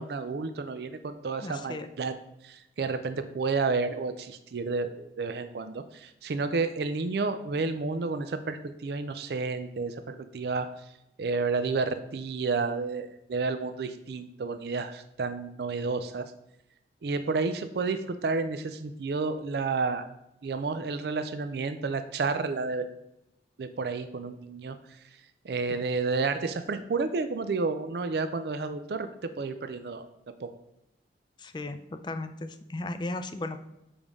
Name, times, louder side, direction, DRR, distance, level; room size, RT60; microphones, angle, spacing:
voice 1, 0.0-2.1 2.4-10.7 11.2-16.3 17.0-20.1 20.4-22.8 23.6-24.8 25.4-30.1 30.4-30.5, right 4 dB, 65° right, 10 dB, 0.4 m, -31 dB
voice 2, 1.4-1.9 25.7-25.8 31.4-33.6, left 2 dB, 25° left, 10 dB, 0.4 m, -36 dB
6.9 x 5.2 x 3.6 m, 0.86 s
head